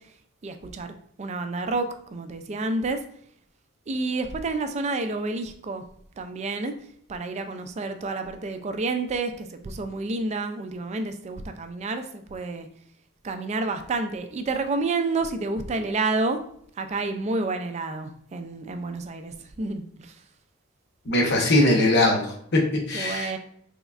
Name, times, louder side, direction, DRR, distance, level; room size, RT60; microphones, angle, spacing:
voice 1, 0.4-3.0 3.9-5.8 6.2-6.7 7.1-12.7 13.2-16.4 16.8-20.2 22.9-23.4, right 3 dB, 30° right, 7 dB, 0.3 m, -29 dB
voice 2, 21.0-22.6 22.9-23.3, left 1 dB, 50° left, 1 dB, 0.8 m, -21 dB
3.5 x 3.1 x 2.4 m, 0.66 s
head